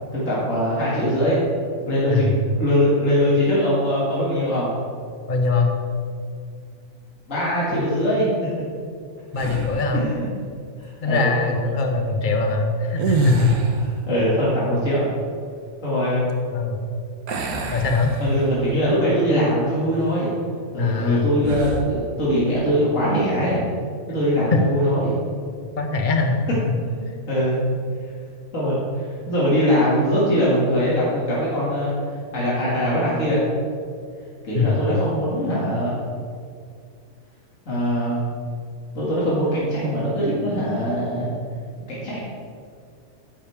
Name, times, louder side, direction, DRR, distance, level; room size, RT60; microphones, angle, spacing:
voice 1, 0.1-1.4 1.9-2.3 2.6-4.7 7.3-8.3 9.9-10.3 10.8-11.3 14.1-15.1 15.8-16.3 18.2-20.3 20.7-23.6 24.1-25.2 26.5-26.6 27.3-27.6 28.5-33.4 34.4-36.0 37.7-38.2 38.9-41.3 41.9-42.2, equal, 60° left, -8 dB, 2.9 m, -22 dB
voice 2, 5.3-5.7 7.7-7.8 9.3-10.1 11.0-13.5 16.5-16.8 17.7-18.1 20.8-21.3 24.5-24.6 25.8-26.4 27.0-27.1 34.5-34.8, left 4 dB, 35° left, 3 dB, 1.2 m, -22 dB
sound 1, 9.3-10.0 12.9-14.0 17.3-18.7 19.2-19.4 21.4-21.9, right 3 dB, 85° right, 1.5 m, -26 dB
13.5 x 10.5 x 3.6 m, 2.2 s
omnidirectional pair, 1.5 m